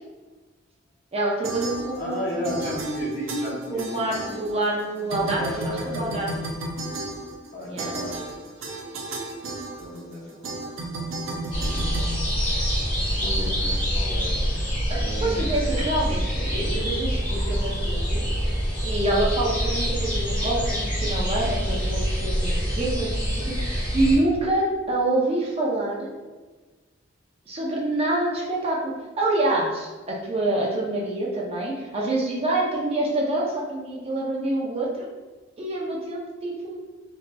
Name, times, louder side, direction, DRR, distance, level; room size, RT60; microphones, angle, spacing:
voice 1, 1.1-2.5 3.7-6.3 7.7-7.9 14.9-18.2 18.8-23.5 23.9-26.1 27.5-35.1 35.6-36.8, right 2 dB, 30° right, -3 dB, 0.6 m, -26 dB
sound 1, 1.4-2.2 2.4-4.8 5.1-13.0, right 2 dB, 75° right, 0.6 m, -34 dB
voice 2, 1.9-4.5 4.9-6.4 7.5-8.5 9.7-10.7 11.0-11.1 13.1-14.6 14.9-15.8, equal, 45° left, -7 dB, 1.3 m, -34 dB
sound 2, 11.5-24.2, equal, 25° left, 1.5 m, -26 dB
4.0 x 2.8 x 2.2 m, 1.3 s
head